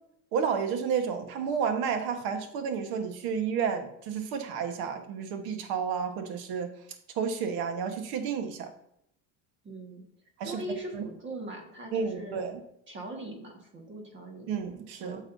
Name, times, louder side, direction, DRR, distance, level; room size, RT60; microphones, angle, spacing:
voice 1, 0.3-6.7 7.1-8.7 10.4-10.6 10.9-11.0 11.9-12.6 14.5-15.2, right 6 dB, 70° right, 7 dB, 1.4 m, -31 dB
voice 2, 9.6-10.1 10.4-12.4 12.9-14.5 15.0-15.3, right 1 dB, 30° right, 2 dB, 1.7 m, -40 dB
9.3 x 6.5 x 2.7 m, 0.75 s
cardioid pair, 130°, 39 cm